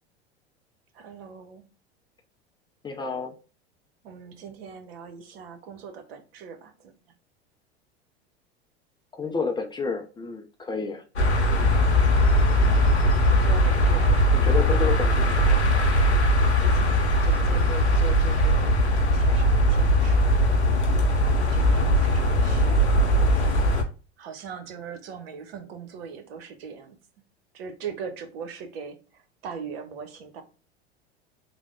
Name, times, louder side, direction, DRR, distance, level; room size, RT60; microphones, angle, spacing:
voice 1, 0.9-1.6 4.0-6.9 13.3-14.8 16.6-18.8 19.1-20.4 21.2-23.2 24.2-27.0 27.5-30.4, right 6 dB, 65° right, 0.8 m, -40 dB
voice 2, 2.8-3.3 9.1-11.0 14.3-15.6, left 4 dB, 15° left, 0.4 m, -30 dB
sound 1, 11.2-23.8, equal, 90° left, 0.7 m, -20 dB
3.3 x 2.0 x 3.6 m
figure-of-eight pair, 85°, 33 cm